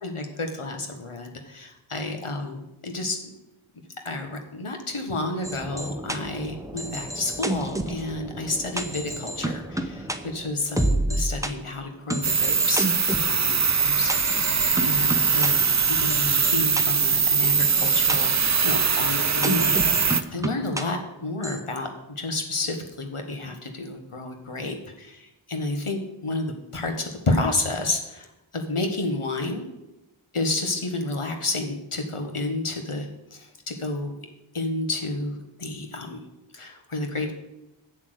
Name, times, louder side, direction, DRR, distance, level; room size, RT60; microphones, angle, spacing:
voice 1, 0.0-3.2 4.0-15.6 15.9-28.3 28.5-29.6 30.3-33.1 33.3-34.1 34.5-36.2 36.5-37.3, left 2 dB, 90° left, 4 dB, 1.5 m, -30 dB
sound 1, 5.4-11.5 12.1-13.3 14.1-15.5 16.1-16.8 17.4-18.2 19.4-20.8 21.4-21.6, right 1 dB, 5° right, 0.8 m, -30 dB
sound 2, 12.2-20.2, right 6 dB, 35° right, 0.5 m, -22 dB
7.7 x 7.3 x 7.9 m, 0.93 s
wide cardioid pair, 40°, 49 cm